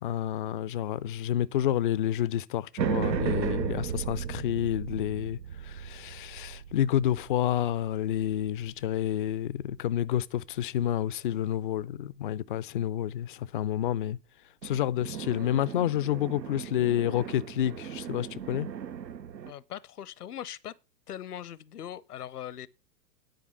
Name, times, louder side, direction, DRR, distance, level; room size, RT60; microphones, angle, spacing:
voice 1, 0.0-14.2 14.6-18.7, left 11 dB, 35° left, 0.4 m, -29 dB
sound 1, 2.8-9.3 14.6-19.5, right 8 dB, 85° right, 0.6 m, -36 dB
voice 2, 19.5-20.7 21.1-22.7, left 11 dB, 65° left, 0.8 m, -40 dB
10.0 x 5.1 x 6.6 m
figure-of-eight pair, 100°, 50 cm